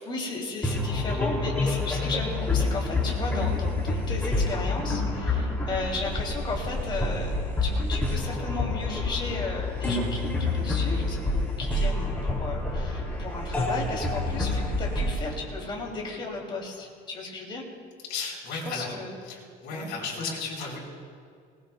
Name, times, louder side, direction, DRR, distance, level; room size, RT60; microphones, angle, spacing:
voice 1, 0.0-7.3 7.6-17.6 18.5-19.1 19.7-20.3 20.6-20.7, left 3 dB, 25° left, -1 dB, 2.8 m, -35 dB
sound 1, 0.6-16.3, left 2 dB, 10° left, 2.6 m, -28 dB
voice 2, 18.1-18.9 19.2-20.8, left 4 dB, 70° left, -3 dB, 4.2 m, -35 dB
20.0 x 19.5 x 2.3 m, 2.2 s
cardioid pair, 155°, 18 cm